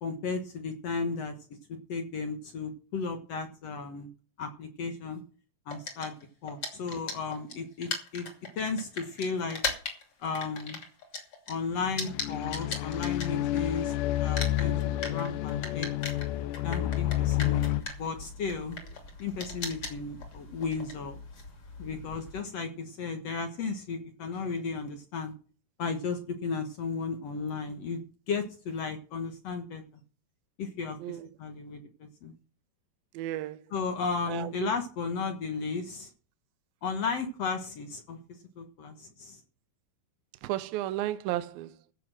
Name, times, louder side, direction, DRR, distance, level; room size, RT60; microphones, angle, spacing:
voice 1, 0.0-1.3 1.7-4.1 4.4-5.2 5.7-6.2 6.4-8.3 8.6-9.6 10.2-10.8 11.5-16.2 16.6-18.8 19.2-21.2 21.8-25.3 25.8-29.8 30.6-32.4 33.7-36.1 36.8-38.2 38.6-39.4, left 4 dB, 60° left, 1.9 m, -34 dB
sound 1, 5.7-13.9 14.1-22.4, left 4 dB, 40° left, 3.3 m, -38 dB
sound 2, 11.8-17.8, left 13 dB, 75° left, 2.0 m, -30 dB
voice 2, 33.1-33.6 34.3-34.7 40.4-41.7, right 14 dB, 80° right, 2.5 m, -33 dB
15.5 x 6.1 x 7.6 m
omnidirectional pair, 4.2 m